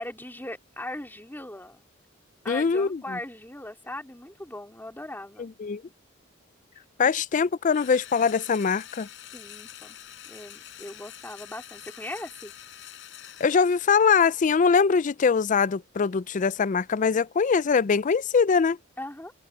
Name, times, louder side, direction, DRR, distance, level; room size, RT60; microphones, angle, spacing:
voice 1, 0.0-1.9 2.4-5.5 7.0-7.1 9.3-10.0 10.3-12.5 19.0-19.3, left 1 dB, 10° left, 3.8 m, -39 dB
voice 2, 2.5-3.2 5.4-5.8 7.0-9.1 13.4-18.8, left 5 dB, 40° left, 0.4 m, -22 dB
Engine / Drill, 7.7-14.3, left 11 dB, 65° left, 5.1 m, -46 dB
head